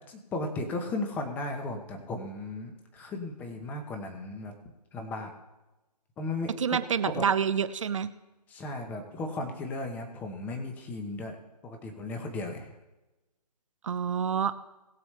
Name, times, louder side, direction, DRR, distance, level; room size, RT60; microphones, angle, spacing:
voice 1, 0.1-4.5 4.9-5.3 6.2-6.8 7.1-7.2 8.5-11.4 11.6-12.7, left 2 dB, 10° left, 4 dB, 1.1 m, -35 dB
voice 2, 6.6-8.1 13.8-14.5, right 7 dB, 50° right, 13 dB, 0.9 m, -27 dB
20.0 x 7.0 x 3.3 m, 1.0 s
hypercardioid pair, 160°, 21 cm